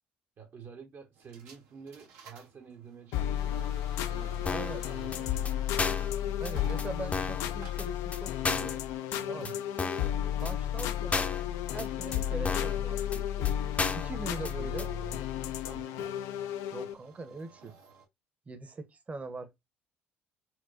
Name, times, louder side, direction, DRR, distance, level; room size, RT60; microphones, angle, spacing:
voice 1, 0.4-5.7 9.4-9.6 14.1-16.0, right 7 dB, 50° right, 1.0 m, -49 dB
sound 1, 1.2-18.1, right 5 dB, 75° right, 1.0 m, -57 dB
sound 2, 3.1-16.9, left 11 dB, 75° left, 0.4 m, -33 dB
sound 3, 4.5-4.8 5.1-5.2 5.5-5.6 5.8-6.1 6.5-6.6 6.8-6.9 7.1-7.4 7.8-7.9 8.1-8.2 8.4-8.8 9.1-9.2 9.4-9.5 9.8-10.1 10.5-10.6 10.8-10.9 11.1-11.4 11.8-11.9 12.1-12.2 12.5-12.8 13.1-13.2 13.4-13.5 13.8-14.1 14.4-14.5 14.8-14.9, left 4 dB, 25° left, 0.6 m, -32 dB
voice 2, 4.5-4.8 6.4-8.8 9.3-9.6 10.4-11.3 11.7-13.6 13.9-14.9 16.7-17.7 18.5-19.5, right 3 dB, 30° right, 0.9 m, -41 dB
4.5 x 2.2 x 2.5 m
supercardioid pair, 70°, 5 cm